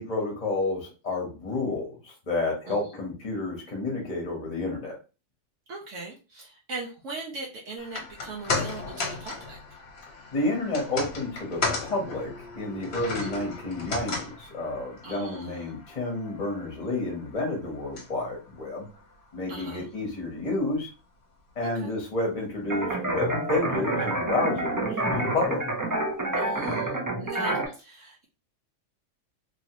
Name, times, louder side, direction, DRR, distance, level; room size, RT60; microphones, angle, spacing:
voice 1, 0.0-5.0 10.3-18.9 19.3-20.9 21.6-25.6, left 2 dB, 30° left, 0 dB, 1.1 m, -30 dB
voice 2, 5.7-9.6 12.9-13.4 15.0-15.7 19.5-19.9 21.6-21.9 26.4-26.9 27.2-28.2, right 3 dB, 70° right, -2 dB, 1.0 m, -39 dB
sound 1, 7.8-20.2 20.5-20.6, left 3 dB, 55° left, 1.0 m, -36 dB
sound 2, 22.7-27.7, right 2 dB, 30° right, 0.3 m, -28 dB
3.1 x 2.8 x 2.8 m, 0.32 s
omnidirectional pair, 1.4 m